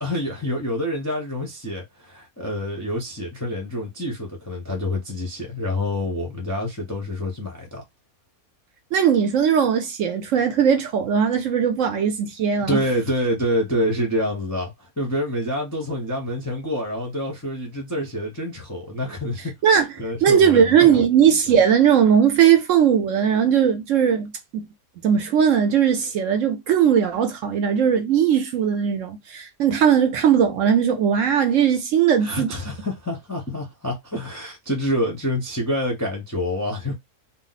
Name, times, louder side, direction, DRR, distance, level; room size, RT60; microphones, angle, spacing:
voice 1, 0.0-7.8 12.7-21.0 32.2-36.9, left 1 dB, 20° left, 0.5 m, -27 dB
voice 2, 8.9-12.8 19.6-19.9 20.2-24.7 25.0-32.5, right 8 dB, 65° right, 0.9 m, -19 dB
2.6 x 2.0 x 3.9 m
omnidirectional pair, 1.6 m